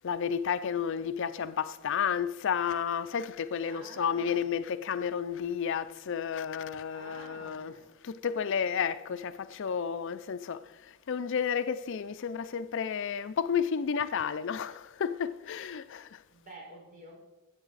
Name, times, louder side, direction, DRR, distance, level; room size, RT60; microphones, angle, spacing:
voice 1, 0.0-7.8 8.0-16.2, left 7 dB, 60° left, 0.4 m, -32 dB
voice 2, 3.6-4.5 6.9-7.9 16.3-17.2, right 1 dB, 40° right, 4.8 m, -49 dB
20.0 x 8.4 x 4.0 m
head